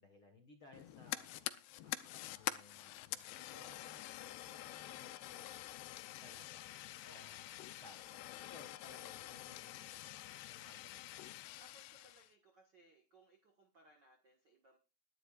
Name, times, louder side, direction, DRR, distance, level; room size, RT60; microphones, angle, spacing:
voice 1, 0.0-1.4 1.8-5.5 6.2-6.6 7.0-11.2, left 3 dB, 55° left, 3 dB, 1.4 m, -61 dB
Fire, 0.7-12.3, left 15 dB, 80° left, 2.7 m, -47 dB
voice 2, 3.5-4.0 7.0-7.5 11.6-14.8, right 1 dB, 60° right, 2 dB, 1.1 m, -65 dB
21.5 x 11.0 x 2.5 m, 0.33 s
omnidirectional pair, 4.7 m